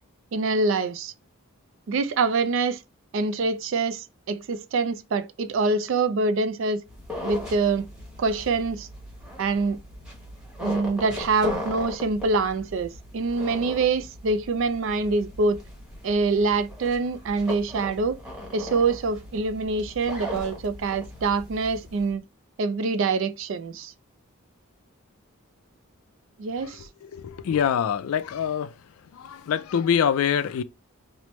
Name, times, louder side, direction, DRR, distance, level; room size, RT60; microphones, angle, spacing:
voice 1, 0.3-1.1 1.9-2.8 3.1-6.8 7.2-7.9 8.2-8.9 9.4-9.8 10.6-15.6 16.0-18.2 18.5-22.2 22.6-23.9 26.4-26.9, right 3 dB, 60° right, 0.4 m, -25 dB
sound 1, 6.8-22.1, left 1 dB, 5° right, 1.0 m, -38 dB
voice 2, 27.1-28.7 29.1-30.6, left 8 dB, 80° left, 0.3 m, -24 dB
3.1 x 2.0 x 3.0 m
head